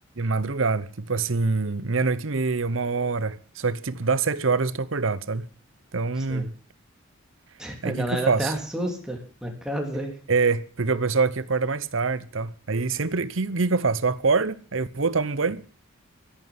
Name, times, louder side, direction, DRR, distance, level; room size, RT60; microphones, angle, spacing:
voice 1, 0.2-5.5 5.9-6.5 7.8-8.5 10.3-15.6, right 4 dB, 70° right, 0.9 m, -25 dB
voice 2, 6.2-6.5 7.6-10.1, right 1 dB, 5° right, 3.3 m, -30 dB
13.5 x 11.0 x 7.7 m
head